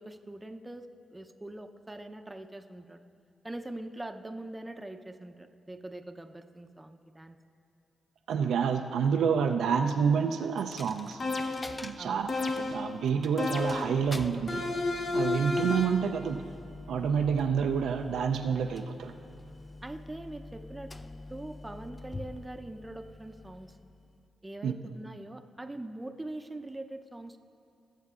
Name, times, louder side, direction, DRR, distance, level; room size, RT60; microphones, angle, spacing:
voice 1, 0.0-3.0 3.4-7.4 12.0-12.3 19.8-20.9 21.3-23.8 24.4-27.4, right 1 dB, 20° right, 7 dB, 0.6 m, -43 dB
voice 2, 8.3-11.2 11.8-12.3 12.6-14.6 15.1-16.4 16.9-19.1 24.6-24.7, right 6 dB, 75° right, 5 dB, 0.4 m, -28 dB
Coin (dropping), 10.6-24.3, left 2 dB, 25° left, 0.4 m, -47 dB
sound 1, 11.2-11.8 12.3-12.9 13.4-14.0 14.5-16.1, left 3 dB, 55° left, 0.7 m, -31 dB
19.5 x 7.3 x 2.4 m, 2.7 s
supercardioid pair, 45°, 0 cm